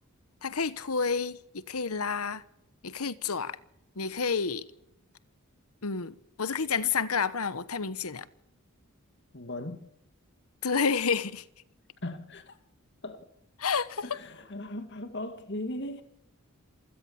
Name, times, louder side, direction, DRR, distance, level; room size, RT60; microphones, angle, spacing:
voice 1, 0.4-2.4 2.8-3.6 4.0-4.7 5.8-8.3 10.6-11.4 13.6-14.0, left 5 dB, 80° left, 1.1 m, -30 dB
voice 2, 9.3-9.9 12.0-12.6 13.0-13.3 14.0-16.0, left 1 dB, 50° left, 2.1 m, -38 dB
27.0 x 16.5 x 7.2 m
head